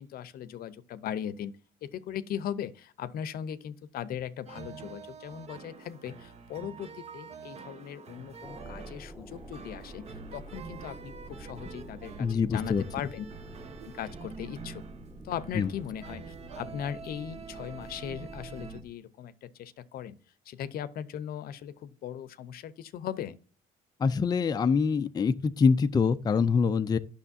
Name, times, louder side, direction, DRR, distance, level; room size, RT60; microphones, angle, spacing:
voice 1, 0.0-13.3 13.9-14.8 15.2-20.2 20.5-23.4, left 9 dB, 60° left, 0.7 m, -39 dB
sound 1, 4.5-18.8, right 5 dB, 40° right, 1.0 m, -46 dB
sound 2, 8.4-18.9, right 1 dB, 5° right, 1.2 m, -47 dB
voice 2, 12.2-12.8 15.5-15.7 24.0-27.0, left 5 dB, 25° left, 0.4 m, -25 dB
9.9 x 6.4 x 2.6 m
cardioid pair, 110°, 17 cm